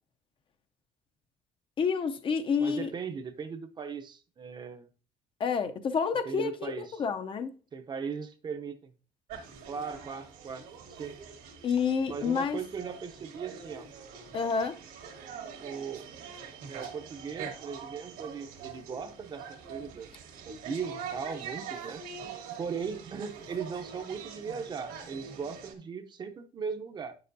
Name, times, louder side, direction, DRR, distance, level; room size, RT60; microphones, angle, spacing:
voice 1, 1.8-2.9 5.4-7.5 11.6-12.6 14.3-14.8, left 6 dB, 35° left, 0.5 m, -29 dB
voice 2, 2.6-4.9 6.2-7.0 7.7-8.9 9.7-11.2 12.1-13.9 15.6-16.1 16.7-20.1 20.4-22.3 22.6-27.1, right 6 dB, 30° right, 0.6 m, -38 dB
sound 1, 9.3-25.7, right 6 dB, 80° right, 1.8 m, -44 dB
9.1 x 6.8 x 2.6 m
cardioid pair, 150°, 14 cm